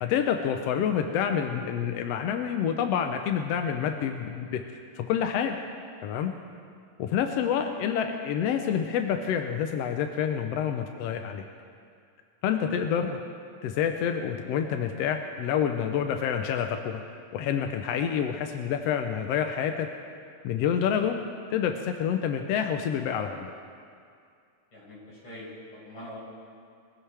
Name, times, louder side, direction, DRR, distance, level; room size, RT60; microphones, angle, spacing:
voice 1, 0.0-4.6 5.0-5.6 6.0-6.3 7.0-11.4 12.4-13.2 13.6-19.9 20.4-21.2 21.5-23.5, left 8 dB, 75° left, 5 dB, 1.5 m, -28 dB
voice 2, 24.7-26.2, left 1 dB, 40° left, -6 dB, 5.8 m, -44 dB
24.0 x 16.0 x 3.4 m, 2.3 s
omnidirectional pair, 3.6 m